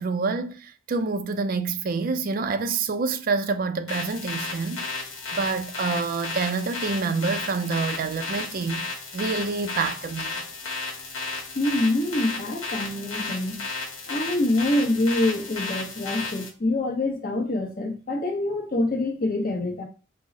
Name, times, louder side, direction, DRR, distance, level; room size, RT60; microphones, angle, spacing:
voice 1, 0.0-4.9 5.3-8.9 9.1-10.4, right 4 dB, 45° right, 0.3 m, -27 dB
sound 1, 3.9-16.5, left 3 dB, 70° left, 1.1 m, -33 dB
voice 2, 11.5-13.6 14.1-19.8, left 2 dB, 45° left, 0.8 m, -25 dB
3.8 x 2.0 x 3.7 m
head